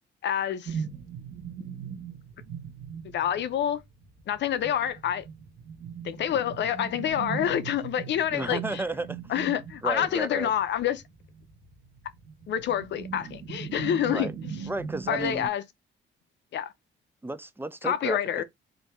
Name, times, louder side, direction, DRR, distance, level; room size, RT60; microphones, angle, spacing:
voice 1, 0.2-0.8 3.0-3.8 4.3-5.2 6.0-8.8 9.3-11.0 12.5-14.7 15.1-15.6 16.5-16.7 17.8-18.4, left 10 dB, 65° left, 0.6 m, -27 dB
sound 1, 0.6-15.5, right 7 dB, 85° right, 1.1 m, -40 dB
voice 2, 8.3-9.2 9.8-10.5 14.1-14.3 14.7-15.5 17.2-18.4, right 2 dB, 10° right, 0.5 m, -33 dB
3.9 x 2.7 x 3.4 m
cardioid pair, 90°, 20 cm